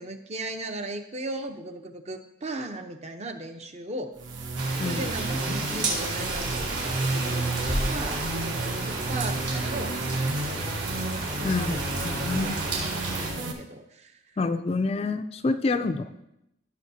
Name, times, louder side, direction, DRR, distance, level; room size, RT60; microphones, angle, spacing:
voice 1, 0.0-4.1 4.8-9.9 10.5-11.1 11.4-11.8 12.2-14.1 15.8-15.9, right 2 dB, 35° right, 6 dB, 0.7 m, -37 dB
sound 1, 4.2-13.5, right 2 dB, 85° right, 1.1 m, -32 dB
Rain, 4.6-13.3, right 2 dB, 65° right, 3.3 m, -31 dB
voice 2, 4.8-5.1 5.5-5.7 11.4-12.7 14.4-16.2, left 3 dB, 30° left, 9 dB, 0.4 m, -28 dB
15.5 x 6.8 x 2.8 m, 0.83 s
head